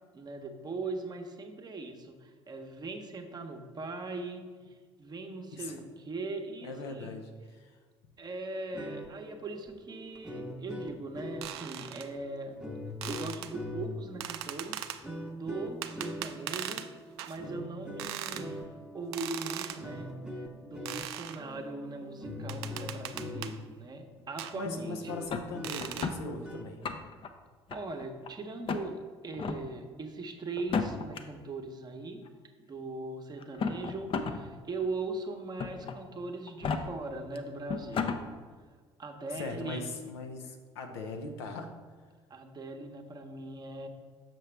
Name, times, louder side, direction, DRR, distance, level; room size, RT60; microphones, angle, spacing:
voice 1, 0.1-4.5 5.0-7.1 8.2-12.6 13.0-14.9 15.3-16.8 17.3-18.6 18.9-20.1 20.6-25.1 27.7-32.2 32.7-38.2 39.0-39.9 42.3-43.9, right 3 dB, 30° right, 5 dB, 0.9 m, -40 dB
voice 2, 6.6-7.7 24.5-26.8 39.3-41.7, left 3 dB, 75° left, 4 dB, 0.7 m, -40 dB
sound 1, 8.6-23.8 24.2-24.3 24.6-26.8, left 1 dB, 5° right, 0.9 m, -43 dB
sound 2, 11.4-12.1 13.0-13.5 14.2-15.0 15.8-16.9 17.2-17.4 18.0-18.5 19.1-19.8 20.9-21.4 22.5-23.6 24.4-24.6 25.6-26.1, right 11 dB, 75° right, 0.4 m, -39 dB
sound 3, 25.3-26.2 26.7-27.3 27.7-28.3 28.7-28.8 29.3-29.6 30.6-31.2 32.3-32.4 33.4-34.4 34.8-34.9 35.6-36.0 36.5-36.8 37.4-37.5 37.7-38.2, left 5 dB, 40° left, 0.6 m, -32 dB
6.6 x 6.0 x 3.3 m, 1.5 s
hypercardioid pair, 60°, 14 cm